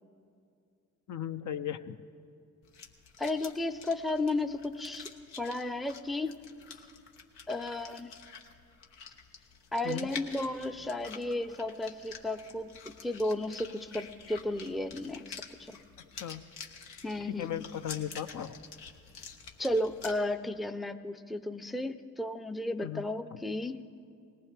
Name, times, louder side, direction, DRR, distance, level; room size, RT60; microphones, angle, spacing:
voice 1, 1.1-2.0 9.8-10.1 16.1-16.4 17.2-18.5 22.8-23.0, left 10 dB, 45° left, 10 dB, 0.6 m, -36 dB
sound 1, 2.6-20.1, left 6 dB, 80° left, 1.2 m, -48 dB
voice 2, 3.2-5.1 5.4-6.4 7.5-8.1 9.7-15.8 17.0-17.7 19.6-23.8, left 1 dB, ahead, 10 dB, 0.6 m, -34 dB
19.0 x 18.0 x 3.4 m, 2.4 s
hypercardioid pair, 45°, 41 cm